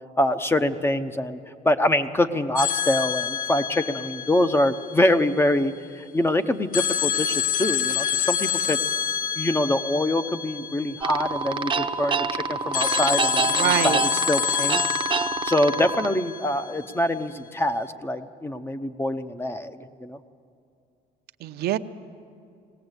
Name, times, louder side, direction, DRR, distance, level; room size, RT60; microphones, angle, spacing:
voice 1, 0.2-1.4 1.6-8.8 9.4-14.0 14.3-14.8 15.4-20.2, left 1 dB, 15° left, 10 dB, 0.8 m, -24 dB
sound 1, 2.6-5.5 6.7-11.7 12.7-16.9, left 9 dB, 55° left, 0.8 m, -27 dB
sound 2, 11.0-16.1, right 5 dB, 30° right, 0.7 m, -27 dB
voice 2, 13.5-14.0 21.4-21.8, right 13 dB, 70° right, 9 dB, 0.7 m, -24 dB
19.5 x 17.5 x 8.1 m, 2.5 s
cardioid pair, 110°, 17 cm